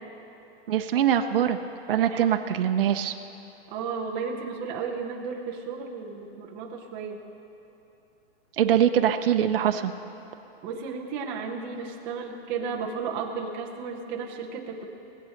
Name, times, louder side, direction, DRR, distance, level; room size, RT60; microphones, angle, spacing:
voice 1, 0.7-1.6 1.9-3.2 8.6-9.9, right 9 dB, 60° right, 6 dB, 0.7 m, -23 dB
voice 2, 2.0-2.4 3.7-7.2 10.6-14.9, right 5 dB, 15° right, 0 dB, 0.7 m, -34 dB
19.5 x 7.8 x 6.4 m, 2.9 s
hypercardioid pair, 175°, 31 cm